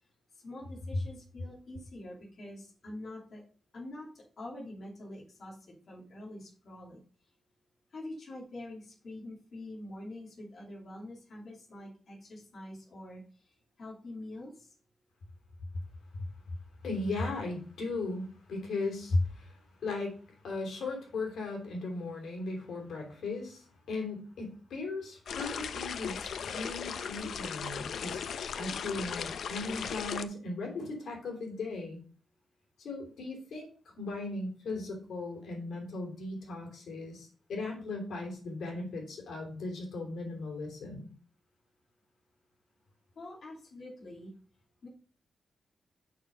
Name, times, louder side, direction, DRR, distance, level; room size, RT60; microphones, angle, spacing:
voice 1, 0.3-3.4 3.7-7.0 7.9-13.2 13.8-14.7 43.1-44.3 44.8-44.9, left 1 dB, 45° left, -4 dB, 2.8 m, -45 dB
voice 2, 16.8-28.2 28.5-32.0 32.8-41.1, left 2 dB, 90° left, 0 dB, 3.1 m, -37 dB
sound 1, 25.3-30.2, left 7 dB, 70° left, 0.5 m, -37 dB
6.7 x 6.1 x 5.4 m, 0.42 s
wide cardioid pair, 170°, 0 cm